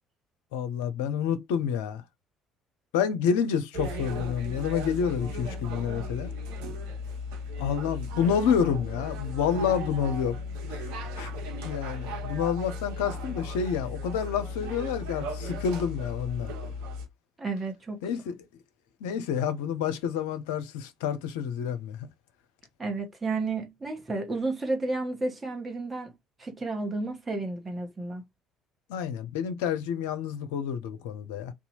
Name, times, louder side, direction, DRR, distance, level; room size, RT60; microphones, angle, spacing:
voice 1, 0.5-2.0 2.9-6.3 7.6-10.4 10.7-10.9 11.1-11.3 11.6-16.5 18.0-18.4 19.0-22.1 28.9-31.5, left 7 dB, 70° left, 0.5 m, -29 dB
sound 1, 3.7-17.1, left 2 dB, 65° right, 0.8 m, -36 dB
voice 2, 17.4-18.0 22.8-26.1 26.4-28.2, right 3 dB, 25° right, 1.1 m, -32 dB
2.7 x 2.4 x 4.1 m
figure-of-eight pair, 50°, 0 cm